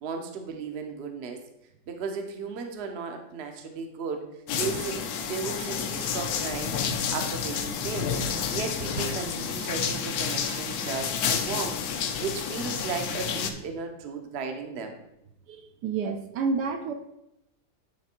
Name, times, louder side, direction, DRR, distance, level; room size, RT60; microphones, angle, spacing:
voice 1, 0.0-1.4 1.9-4.3 4.6-8.1 8.5-15.0, right 5 dB, 50° right, 5 dB, 0.8 m, -35 dB
sound 1, 4.5-13.5, left 7 dB, 65° left, 1.0 m, -30 dB
voice 2, 15.5-16.9, right 4 dB, 70° right, 6 dB, 1.1 m, -29 dB
9.4 x 3.3 x 4.4 m, 0.85 s
omnidirectional pair, 2.0 m